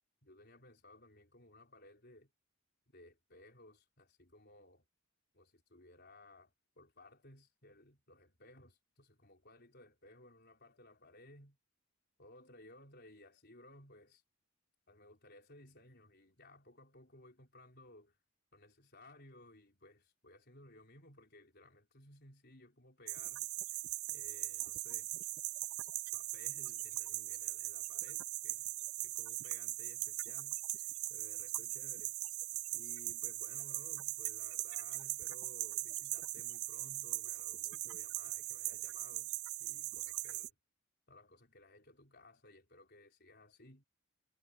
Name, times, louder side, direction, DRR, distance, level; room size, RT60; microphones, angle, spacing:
voice 1, 0.2-2.3 2.9-4.8 5.3-11.6 12.2-14.2 14.9-18.2 18.5-23.8 24.1-25.1 26.1-28.7 29.0-32.1 32.7-40.5 41.1-43.8, left 1 dB, 45° left, 4.8 m, -59 dB
sound 1, 23.1-40.5, right 19 dB, 75° right, 0.5 m, -40 dB
head